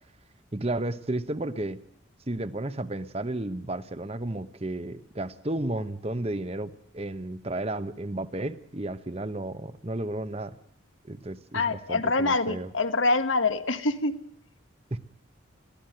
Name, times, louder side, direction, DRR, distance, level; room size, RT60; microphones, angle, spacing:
voice 1, 0.5-1.8 2.3-10.5 11.1-12.7 14.9-15.0, right 1 dB, 30° right, 12 dB, 0.9 m, -33 dB
voice 2, 11.5-14.2, left 3 dB, 80° left, 9 dB, 1.6 m, -25 dB
22.0 x 15.5 x 7.7 m, 0.71 s
head